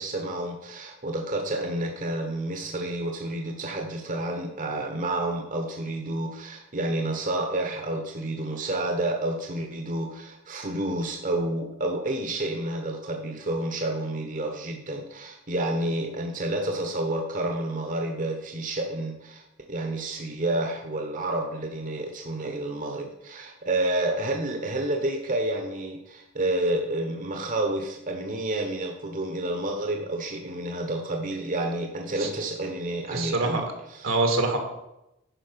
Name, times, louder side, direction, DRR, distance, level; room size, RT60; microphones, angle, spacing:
voice 1, 0.0-34.1, right 1 dB, 40° right, 2 dB, 1.1 m, -30 dB
voice 2, 33.1-33.6 34.0-34.6, right 3 dB, 80° right, 4 dB, 2.1 m, -24 dB
10.5 x 5.1 x 6.8 m, 0.89 s
head